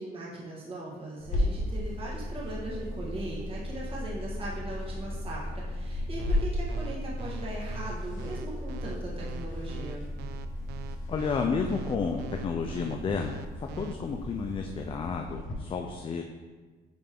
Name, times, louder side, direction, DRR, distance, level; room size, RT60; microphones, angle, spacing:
voice 1, 0.0-10.0, right 2 dB, 35° right, -5 dB, 1.6 m, -39 dB
sound 1, 1.2-15.1, left 1 dB, 15° right, 1.5 m, -38 dB
sound 2, 1.3-15.5, left 1 dB, 50° left, 1.7 m, -37 dB
sound 3, 6.2-13.9, right 11 dB, 75° right, 0.4 m, -44 dB
voice 2, 11.1-16.2, left 5 dB, 30° left, 3 dB, 0.5 m, -31 dB
9.0 x 3.3 x 3.6 m, 1.4 s
cardioid pair, 110°, 17 cm